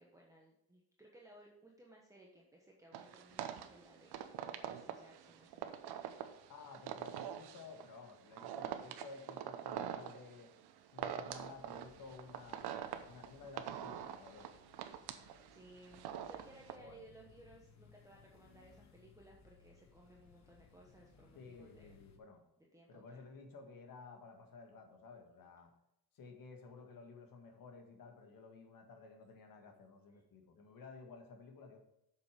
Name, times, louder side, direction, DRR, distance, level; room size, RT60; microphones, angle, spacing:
voice 1, 0.0-6.0 15.5-22.0 22.7-23.2, right 1 dB, 10° right, -2 dB, 1.1 m, -61 dB
sound 1, 2.9-16.7, right 10 dB, 85° right, 0.9 m, -44 dB
voice 2, 6.5-10.5 10.9-14.5 16.8-17.0 21.4-22.4 22.9-25.7 26.1-31.8, left 4 dB, 60° left, 4 dB, 1.7 m, -54 dB
sound 2, 11.2-22.2, left 6 dB, 45° left, 1.2 m, -65 dB
8.1 x 6.7 x 5.1 m, 0.85 s
cardioid pair, 160°, 38 cm